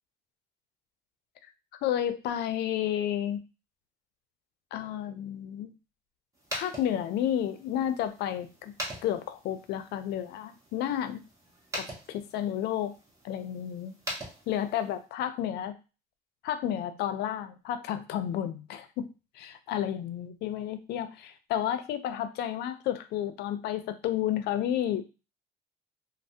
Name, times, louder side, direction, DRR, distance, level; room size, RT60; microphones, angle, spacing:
voice 1, 1.8-3.4 4.7-5.7 6.5-8.7 9.0-11.2 11.7-12.9 13.2-13.9 14.5-15.8 16.4-19.1 19.4-25.0, left 10 dB, 75° left, 10 dB, 0.4 m, -31 dB
sound 1, 6.3-15.1, equal, 20° right, 1.1 m, -43 dB
3.1 x 2.0 x 2.7 m, 0.31 s
cardioid pair, 110°, 17 cm